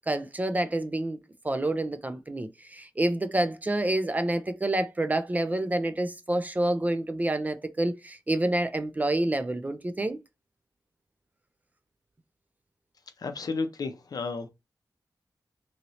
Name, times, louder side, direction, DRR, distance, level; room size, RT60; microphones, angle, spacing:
voice 1, 0.1-1.2 1.4-10.2, right 1 dB, 20° right, 0.3 m, -28 dB
voice 2, 13.2-14.5, left 4 dB, 60° left, 0.5 m, -32 dB
2.8 x 2.7 x 3.0 m
wide cardioid pair, 130°, 7 cm